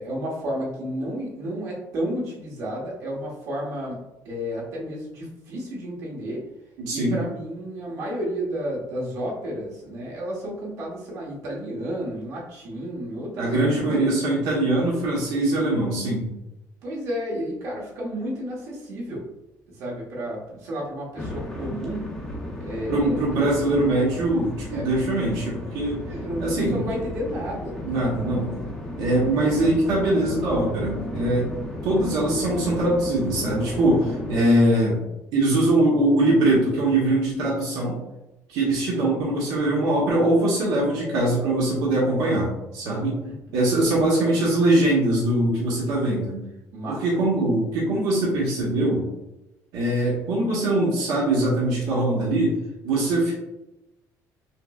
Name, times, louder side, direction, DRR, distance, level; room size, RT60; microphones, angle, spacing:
voice 1, 0.0-6.5 6.9-14.1 16.8-19.3 19.7-22.1 22.6-23.7 24.7-24.9 26.1-27.8 38.9-39.3 43.2-43.6 46.7-47.0, equal, 60° right, -4 dB, 1.2 m, -32 dB
voice 2, 6.8-7.2 13.4-16.3 22.9-26.0 26.4-26.8 27.8-28.5 29.0-31.5 31.8-35.0 35.3-38.0 38.5-43.2 43.5-46.4 46.9-49.0 49.7-52.6 52.8-53.3, right 1 dB, 85° right, -4 dB, 1.0 m, -22 dB
sound 1, 21.2-34.4, left 1 dB, 10° left, 0.5 m, -34 dB
5.5 x 2.0 x 2.3 m, 0.95 s
cardioid pair, 175°, 6 cm